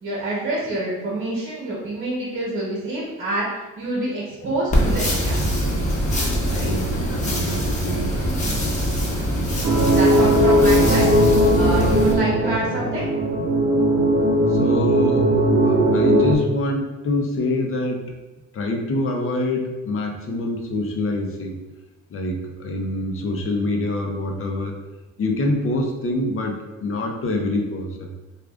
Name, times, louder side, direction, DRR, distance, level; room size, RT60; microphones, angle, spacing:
voice 1, 0.0-3.5 3.8-5.5 6.4-6.7 7.6-7.7 9.1-9.2 9.8-11.1 11.5-13.1, right 1 dB, 40° right, -5 dB, 1.1 m, -27 dB
sound 1, 4.7-12.1, equal, 25° left, 1.1 m, -23 dB
voice 2, 6.6-8.1 10.2-10.3 14.5-15.4 15.6-18.1 18.5-21.6 22.1-24.8 25.2-28.1, left 2 dB, 45° left, 2 dB, 0.7 m, -25 dB
sound 2, 9.6-16.3, right 1 dB, 70° right, 0.8 m, -18 dB
4.7 x 2.4 x 2.4 m, 1.1 s
cardioid pair, 90°, 30 cm